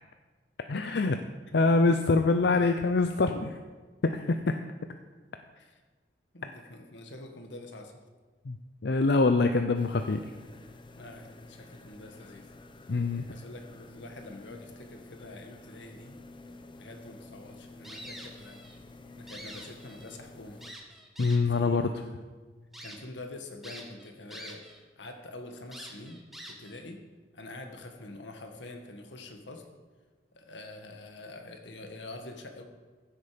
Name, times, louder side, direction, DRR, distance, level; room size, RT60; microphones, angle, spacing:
voice 1, 0.7-1.2 1.5-3.6 4.0-4.6 8.5-8.6 8.8-10.3 12.9-13.2 21.2-21.9, left 3 dB, 65° left, 7 dB, 0.6 m, -24 dB
voice 2, 6.3-8.0 11.0-12.5 13.3-16.2 16.7-18.6 19.2-20.6 21.5-22.2 22.8-24.6 25.0-27.0 27.3-29.7 30.3-32.6, left 2 dB, 85° left, 4 dB, 1.7 m, -46 dB
sound 1, 9.7-20.7, left 2 dB, 30° left, 0.8 m, -51 dB
sound 2, 17.8-18.8 19.1-20.2 20.6-21.6 22.2-22.3 22.7-23.0 23.6-24.8 25.1-25.2 25.7-26.8, right 1 dB, ahead, 1.6 m, -46 dB
15.5 x 8.1 x 5.1 m, 1.4 s
head